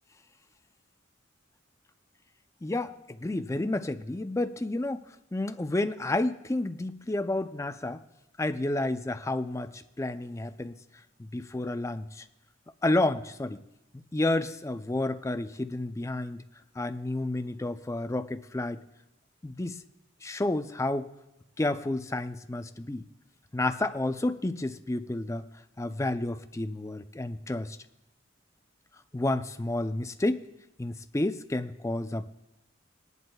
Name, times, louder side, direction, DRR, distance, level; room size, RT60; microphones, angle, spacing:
voice 1, 2.6-5.0 5.3-8.0 8.4-10.8 11.2-12.2 12.8-13.6 13.9-16.4 16.8-18.8 19.4-19.8 20.2-21.1 21.6-23.0 23.5-25.4 25.8-27.8 29.1-30.5 30.8-32.3, left 2 dB, 15° left, 9 dB, 0.4 m, -30 dB
19.0 x 11.0 x 2.3 m, 0.93 s
head